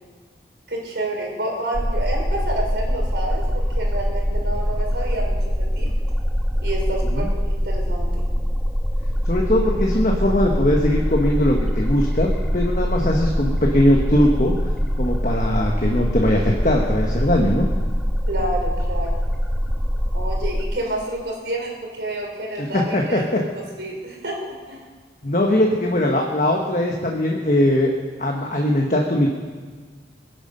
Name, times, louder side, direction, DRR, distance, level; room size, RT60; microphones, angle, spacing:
voice 1, 0.7-5.9 6.6-8.3 18.3-19.2 20.1-23.3 23.6-24.8, right 1 dB, 80° right, 0 dB, 3.6 m, -29 dB
sound 1, 1.7-20.6, equal, ahead, 1.2 m, -23 dB
voice 2, 9.2-17.7 22.6-23.4 25.2-27.9 28.2-29.3, left 1 dB, 45° left, 0 dB, 1.3 m, -20 dB
22.0 x 9.1 x 5.5 m, 1.5 s
head